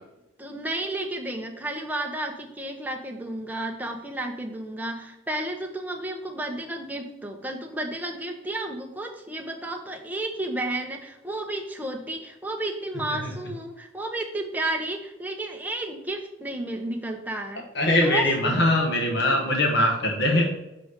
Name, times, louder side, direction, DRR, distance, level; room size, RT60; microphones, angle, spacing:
voice 1, 0.4-17.6 18.0-18.5 19.2-19.6, right 1 dB, 10° right, 2 dB, 0.7 m, -32 dB
voice 2, 17.7-20.5, left 1 dB, 60° left, 1 dB, 1.2 m, -21 dB
6.6 x 3.8 x 5.0 m, 0.90 s
head